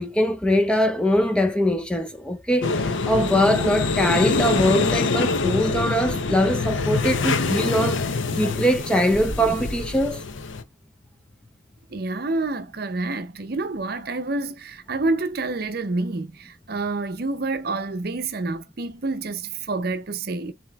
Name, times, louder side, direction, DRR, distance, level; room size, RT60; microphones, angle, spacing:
voice 1, 0.0-10.2, equal, 5° left, 0.4 m, -22 dB
sound 1, 2.6-10.6, left 3 dB, 75° left, 0.7 m, -25 dB
voice 2, 11.9-20.5, right 3 dB, 50° right, 0.6 m, -28 dB
7.3 x 2.9 x 2.3 m
head